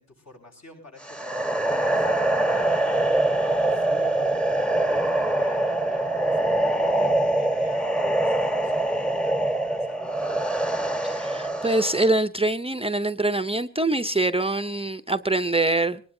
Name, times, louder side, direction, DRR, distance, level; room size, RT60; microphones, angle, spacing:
voice 1, 0.0-2.1 2.5-3.3 3.7-10.1, left 2 dB, 60° left, 1 dB, 7.9 m, -49 dB
sound 1, 1.0-12.1, right 1 dB, 5° left, 1.1 m, -24 dB
voice 2, 11.0-16.0, right 2 dB, 20° right, 8 dB, 0.6 m, -24 dB
23.5 x 19.5 x 2.7 m, 0.43 s
wide cardioid pair, 115°, 31 cm